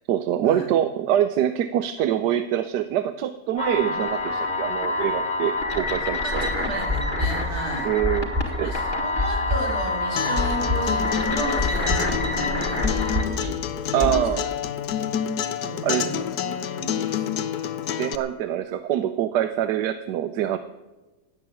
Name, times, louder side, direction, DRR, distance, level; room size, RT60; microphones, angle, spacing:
voice 1, 0.1-6.5 7.8-8.3 8.6-8.7 13.4-13.5 13.9-14.4 15.8-16.1 18.0-20.6, right 11 dB, 90° right, 11 dB, 1.3 m, -24 dB
sound 1, 3.6-13.2, left 2 dB, 30° left, 1.8 m, -27 dB
sound 2, 6.1-14.2, left 2 dB, 10° right, 1.5 m, -27 dB
voice 2, 6.2-7.9 8.4-13.6 14.0-14.5 15.6-17.3, right 2 dB, 70° right, -1 dB, 4.0 m, -34 dB
Acoustic guitar, 10.2-18.1, left 9 dB, 75° left, 1.4 m, -28 dB
17.0 x 8.0 x 9.1 m, 1.2 s
omnidirectional pair, 1.7 m